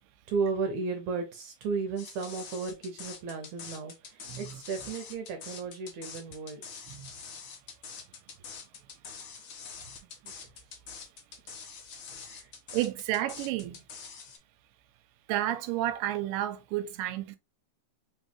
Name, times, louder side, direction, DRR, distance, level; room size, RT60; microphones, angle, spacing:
voice 1, 0.3-6.6 10.2-10.3 12.2-12.5, right 4 dB, 70° right, 2.0 m, -34 dB
sound 1, 2.0-14.4, left 6 dB, 70° left, 1.2 m, -45 dB
voice 2, 4.3-4.6 6.9-7.1 12.7-13.8 15.3-17.4, right 14 dB, 90° right, 2.2 m, -31 dB
4.8 x 3.1 x 3.0 m
omnidirectional pair, 3.8 m